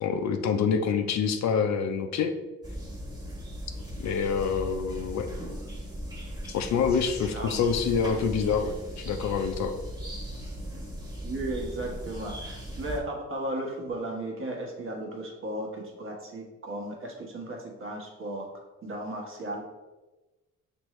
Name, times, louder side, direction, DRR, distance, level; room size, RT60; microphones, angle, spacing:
voice 1, 0.0-2.3 4.0-5.3 6.5-9.7, left 6 dB, 65° left, 6 dB, 0.5 m, -26 dB
sound 1, 2.6-13.0, equal, 15° right, 1.3 m, -38 dB
voice 2, 7.3-7.6 11.2-18.5 18.8-19.6, right 1 dB, 45° right, 0 dB, 1.2 m, -35 dB
6.1 x 2.7 x 3.1 m, 1.1 s
cardioid pair, 90°, 30 cm